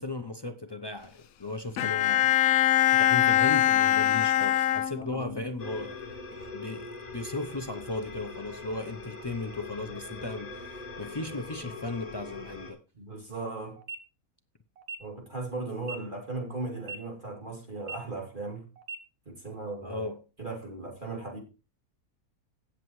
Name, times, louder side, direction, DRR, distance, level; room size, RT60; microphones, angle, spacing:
voice 1, 0.0-2.3 2.9-6.0 6.5-12.8 19.8-20.2, left 2 dB, 45° left, 0.3 m, -36 dB
Bowed string instrument, 1.8-5.4, left 12 dB, 70° left, 1.1 m, -23 dB
voice 2, 5.0-5.3 12.9-13.8 15.0-18.6 19.3-20.0 20.4-21.4, right 3 dB, 30° right, 3.1 m, -37 dB
sound 1, 5.6-12.7, left 3 dB, 25° left, 3.7 m, -42 dB
sound 2, 13.8-14.0 14.8-15.0 15.8-16.0 16.8-17.0 17.8-18.0 18.8-19.0, right 4 dB, 85° right, 1.8 m, -39 dB
17.0 x 7.5 x 3.1 m
omnidirectional pair, 1.6 m